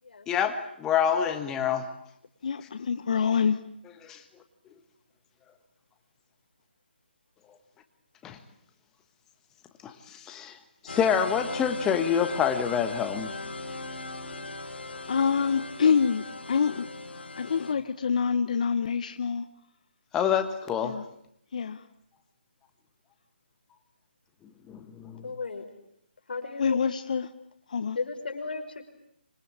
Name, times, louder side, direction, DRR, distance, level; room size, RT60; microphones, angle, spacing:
voice 1, 0.3-1.9 4.0-4.2 8.2-8.4 9.8-10.6 10.8-13.3 20.1-20.9 24.7-25.2, left 8 dB, 10° left, 7 dB, 1.4 m, -27 dB
voice 2, 2.4-3.6 15.1-16.9 17.4-19.4 20.8-21.0 21.5-21.8 26.6-27.3 27.7-28.0, left 6 dB, 45° left, 10 dB, 1.1 m, -26 dB
sound 1, 10.9-17.7, left 2 dB, 80° left, 5.9 m, -38 dB
voice 3, 25.2-25.7 26.3-26.8 28.0-28.9, left 4 dB, 60° left, 4 dB, 5.4 m, -34 dB
26.0 x 24.5 x 8.9 m, 0.73 s
hypercardioid pair, 170°, 6 cm